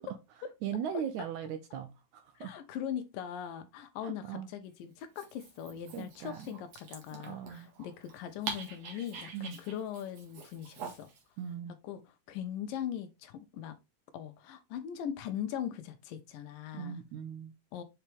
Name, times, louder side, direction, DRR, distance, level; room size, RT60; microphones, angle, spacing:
voice 1, 0.6-2.5 4.0-4.5 5.9-6.5 7.1-7.7 9.3-9.6 11.4-11.7 16.7-17.5, right 8 dB, 75° right, 1.9 m, -39 dB
voice 2, 2.4-11.1 11.8-12.0 12.3-13.8 14.1-17.0 17.7-17.8, left 9 dB, 80° left, 2.5 m, -40 dB
Dog, 5.0-11.2, right 5 dB, 55° right, 2.5 m, -45 dB
7.0 x 4.4 x 3.4 m
omnidirectional pair, 4.0 m